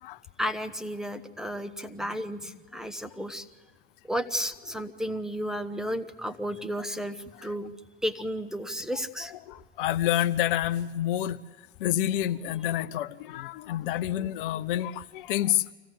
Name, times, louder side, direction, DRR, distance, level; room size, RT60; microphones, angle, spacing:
voice 1, 0.4-3.4 4.0-7.2 7.4-7.7 8.0-9.3, equal, ahead, 1.0 m, -33 dB
voice 2, 8.9-11.4 11.8-15.6, left 12 dB, 55° left, 0.7 m, -28 dB
24.5 x 16.5 x 8.0 m
figure-of-eight pair, 80°, 31 cm